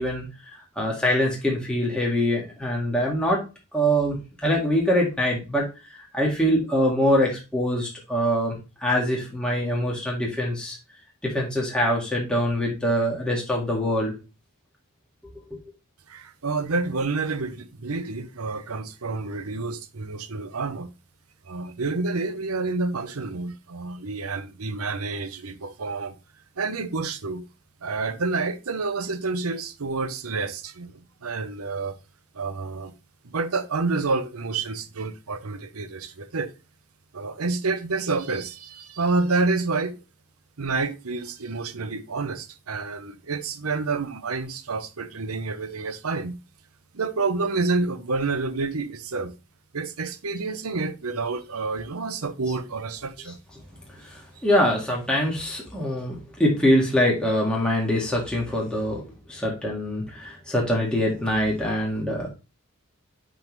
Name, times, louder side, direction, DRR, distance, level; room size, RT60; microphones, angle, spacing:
voice 1, 0.0-3.4 3.7-5.7 6.1-10.8 11.2-14.2 54.0-59.0 59.3-62.3, equal, 5° left, 1.9 m, -24 dB
voice 2, 16.1-20.9 21.4-26.2 26.6-27.4 27.8-32.0 32.3-32.9 33.2-36.5 37.1-40.0 40.6-46.4 46.9-49.3 49.7-53.4, right 3 dB, 85° right, 0.8 m, -28 dB
10.0 x 3.8 x 3.1 m
head